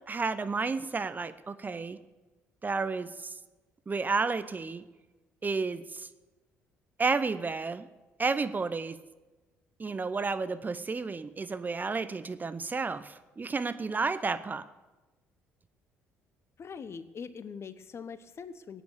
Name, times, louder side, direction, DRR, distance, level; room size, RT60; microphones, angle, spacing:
voice 1, 0.1-2.0 2.6-3.3 3.9-4.8 5.4-6.1 7.0-7.9 8.2-9.0 9.8-14.7, right 4 dB, 25° right, 13 dB, 0.8 m, -31 dB
voice 2, 16.6-18.8, left 6 dB, 40° left, 14 dB, 0.9 m, -42 dB
16.5 x 9.0 x 7.1 m, 1.1 s
hypercardioid pair, 50°, 7 cm